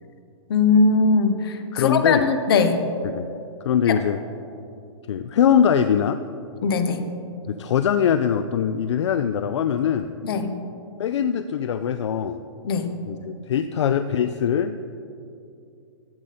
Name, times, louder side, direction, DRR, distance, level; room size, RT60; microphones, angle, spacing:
voice 1, 0.5-2.8 3.9-4.0 6.6-7.0 10.2-10.5 12.6-12.9, left 4 dB, 50° left, 8 dB, 1.0 m, -20 dB
voice 2, 1.7-2.3 3.0-3.3 3.6-4.2 5.1-6.2 7.5-10.1 11.0-12.4 13.1-14.8, left 8 dB, 70° left, 11 dB, 0.4 m, -22 dB
12.0 x 8.0 x 4.2 m, 2.5 s
hypercardioid pair, 155°, 16 cm